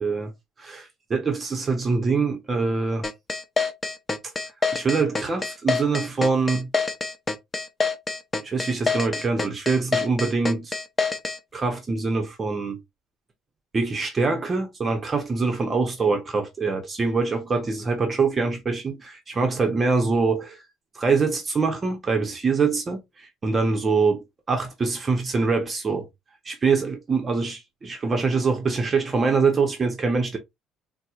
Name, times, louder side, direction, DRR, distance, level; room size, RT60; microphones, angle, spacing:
voice 1, 0.0-0.3 0.6-3.1 4.7-6.7 8.4-10.7 11.5-12.8 13.7-20.6 20.9-26.1 26.4-30.4, right 4 dB, 25° right, 0.7 m, -24 dB
sound 1, 3.0-11.4, left 4 dB, 20° left, 0.5 m, -26 dB
4.2 x 2.0 x 2.3 m
cardioid pair, 125°, 0 cm